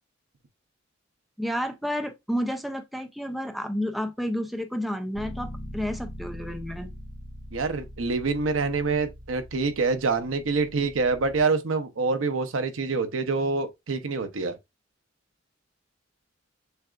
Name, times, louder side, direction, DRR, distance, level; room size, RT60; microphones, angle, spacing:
voice 1, 1.4-6.9, equal, ahead, 0.5 m, -31 dB
Bass guitar, 5.2-11.4, equal, 40° left, 0.9 m, -42 dB
voice 2, 7.5-14.5, right 4 dB, 85° right, 0.7 m, -26 dB
6.6 x 2.4 x 2.4 m
head